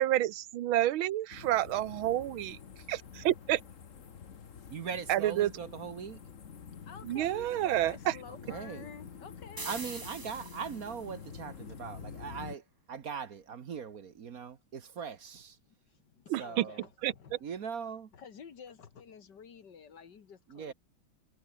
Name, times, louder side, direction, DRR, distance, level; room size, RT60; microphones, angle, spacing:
voice 1, 0.0-2.5 2.9-3.0 3.2-3.6 5.1-5.5 7.0-8.2 16.3-16.6 17.0-17.1, right 13 dB, 90° right, 1.6 m, -29 dB
sound 1, 1.3-12.6, left 6 dB, 40° left, 1.6 m, -48 dB
voice 2, 4.7-6.2 8.3-8.9 9.6-15.6 16.4-16.9 17.4-18.1 20.5-20.7, right 6 dB, 50° right, 1.4 m, -40 dB
voice 3, 6.9-9.8 15.7-17.4 18.1-20.7, left 6 dB, 60° left, 2.3 m, -50 dB
sound 2, 9.6-11.1, right 3 dB, 20° right, 0.6 m, -43 dB
omnidirectional pair, 2.2 m